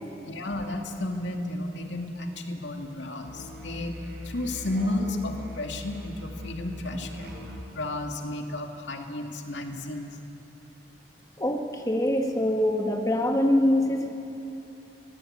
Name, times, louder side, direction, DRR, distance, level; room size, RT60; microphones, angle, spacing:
voice 1, 0.2-4.0 4.2-7.4 7.7-10.2, left 1 dB, 85° left, 3 dB, 2.2 m, -33 dB
Musical instrument, 3.3-7.8, left 1 dB, 65° right, 4.6 m, -40 dB
voice 2, 11.4-14.1, left 1 dB, 20° left, 2 dB, 1.7 m, -24 dB
24.5 x 18.0 x 8.7 m, 2.9 s
head